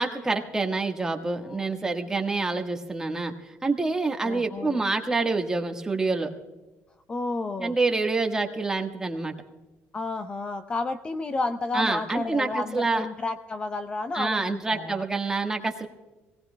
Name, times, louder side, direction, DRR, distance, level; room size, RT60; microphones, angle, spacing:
voice 1, 0.0-6.3 7.6-9.3 11.7-13.1 14.1-15.9, right 3 dB, 15° right, 4 dB, 1.4 m, -27 dB
voice 2, 4.2-4.8 7.1-7.8 9.9-15.0, left 3 dB, 20° left, 9 dB, 0.5 m, -31 dB
24.0 x 18.0 x 2.2 m, 1.2 s
cardioid pair, 135°, 5 cm